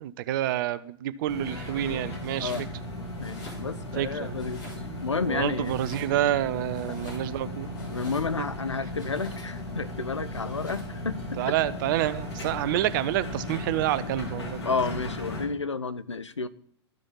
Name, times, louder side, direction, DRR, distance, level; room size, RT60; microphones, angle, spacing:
voice 1, 0.0-2.5 4.0-4.4 4.8-7.7 8.4-8.5 11.4-14.7, right 13 dB, 45° right, 0.5 m, -28 dB
sound 1, 1.3-15.5, left 1 dB, 65° left, 2.1 m, -36 dB
Domestic sounds home sounds, 2.2-2.7 3.1-4.0 4.4-5.1 5.6-6.4 6.7-8.5 9.0-9.7 10.3-11.0, left 2 dB, 30° left, 3.8 m, -48 dB
voice 2, 3.2-4.6 5.0-5.8 6.9-7.1 7.8-11.5 14.6-16.5, left 4 dB, 85° left, 0.4 m, -31 dB
13.0 x 4.9 x 4.1 m
figure-of-eight pair, 95°, 15 cm